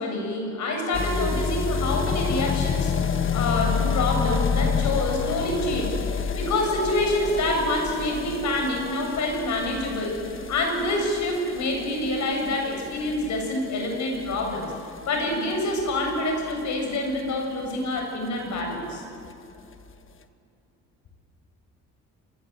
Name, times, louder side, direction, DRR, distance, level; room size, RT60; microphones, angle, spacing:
voice 1, 0.0-3.0 3.3-6.0 6.3-14.7 15.0-19.0, left 1 dB, 70° left, 2 dB, 6.9 m, -26 dB
sound 1, 0.9-17.7 18.0-18.1 18.3-18.4 18.6-18.7 18.9-19.0 19.7-19.8, left 6 dB, 45° left, 1.4 m, -29 dB
26.5 x 22.5 x 8.0 m, 2.7 s
cardioid pair, 90°, 30 cm